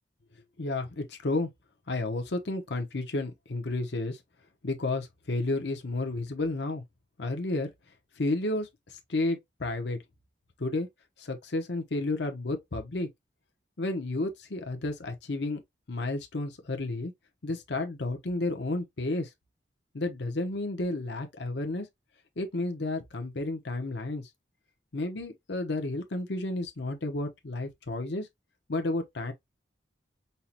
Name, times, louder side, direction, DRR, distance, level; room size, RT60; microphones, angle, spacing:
voice 1, 0.6-1.5 1.9-4.2 4.6-6.8 7.2-7.7 8.2-10.0 10.6-10.9 11.2-13.1 13.8-15.6 15.9-17.1 17.4-19.3 19.9-21.9 22.4-24.3 24.9-28.3 28.7-29.3, left 2 dB, 75° left, 0.8 m, -31 dB
5.5 x 2.1 x 2.8 m
head